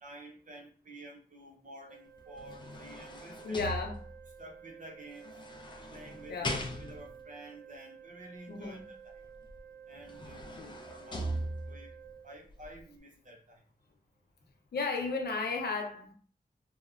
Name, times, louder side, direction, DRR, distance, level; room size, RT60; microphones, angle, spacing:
voice 1, 0.0-3.7 4.4-5.3 5.9-9.2 9.9-11.9 12.2-13.6, right 1 dB, 50° right, 1 dB, 0.7 m, -51 dB
Organ, 1.9-12.9, right 8 dB, 85° right, 0.7 m, -53 dB
sound 1, 2.2-4.4 5.2-7.2 9.5-9.6 10.0-12.0 12.5-12.6, equal, 30° left, 0.4 m, -40 dB
voice 2, 3.4-4.0 6.3-6.6 8.5-8.8 10.6-10.8 14.7-16.1, left 4 dB, 70° left, 2 dB, 0.6 m, -34 dB
2.8 x 2.1 x 2.3 m, 0.42 s
wide cardioid pair, 80°, 17 cm